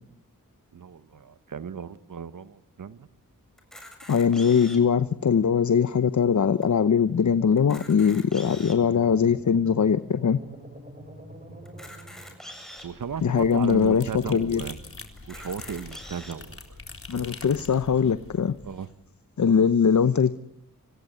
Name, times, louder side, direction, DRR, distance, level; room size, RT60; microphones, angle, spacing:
voice 1, 0.7-3.1 11.5-11.6 12.8-14.8 15.3-16.8 17.1-17.6 18.6-18.9, right 7 dB, 65° right, 1.1 m, -36 dB
Camera, 3.6-5.0 5.6-5.7 5.9-6.1 6.6-6.7 7.5-8.9 9.5-9.6 11.6-12.9 13.6-13.7 14.0-14.1 15.2-16.3, equal, ahead, 7.5 m, -44 dB
voice 2, 4.1-10.4 13.2-14.6 17.1-18.6 19.4-20.3, left 6 dB, 55° left, 0.9 m, -21 dB
sound 1, 8.4-12.7, right 1 dB, 25° right, 7.4 m, -45 dB
sound 2, 12.8-18.9, left 3 dB, 40° left, 3.9 m, -44 dB
26.0 x 17.0 x 8.0 m
cardioid pair, 45°, 35 cm